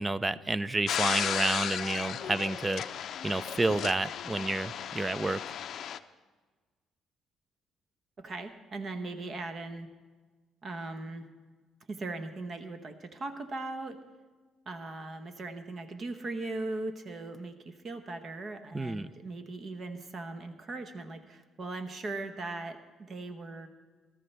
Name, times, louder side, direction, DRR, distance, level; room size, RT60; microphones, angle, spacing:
voice 1, 0.0-2.8 3.2-5.4 18.7-19.1, right 2 dB, 15° right, 16 dB, 0.4 m, -30 dB
sound 1, 0.9-6.0, left 9 dB, 55° left, 0.5 m, -35 dB
voice 2, 8.2-9.9 10.6-11.3 11.9-14.0 14.7-23.7, right 2 dB, 40° right, 8 dB, 1.0 m, -39 dB
18.5 x 13.5 x 3.3 m, 1.3 s
cardioid pair, 120°, 0 cm